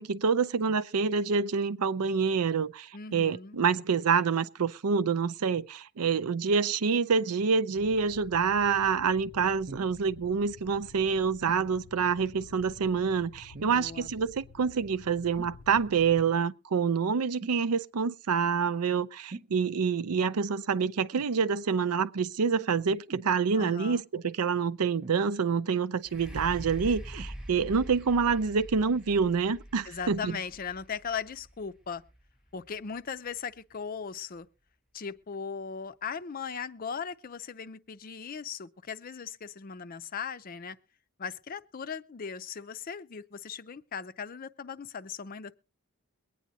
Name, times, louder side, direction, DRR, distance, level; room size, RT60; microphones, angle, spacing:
voice 1, 0.0-30.4, right 5 dB, 90° right, 0.5 m, -27 dB
voice 2, 2.9-3.6 13.7-14.1 23.5-24.1 29.9-32.0 32.5-34.5 34.9-40.8 41.2-45.6, left 6 dB, 40° left, 0.5 m, -38 dB
sound 1, 7.7-16.2, left 4 dB, 85° left, 0.6 m, -52 dB
sound 2, 9.7-10.0 11.4-11.7 13.5-13.9 15.4-15.6 17.4-17.7 19.3-19.6 21.1-21.4 23.1-23.3 25.0-25.6 27.1-27.4 28.2-28.3, right 3 dB, 45° right, 0.6 m, -44 dB
sound 3, 26.0-33.8 34.4-34.5, equal, 5° right, 0.7 m, -44 dB
22.5 x 9.3 x 2.8 m
head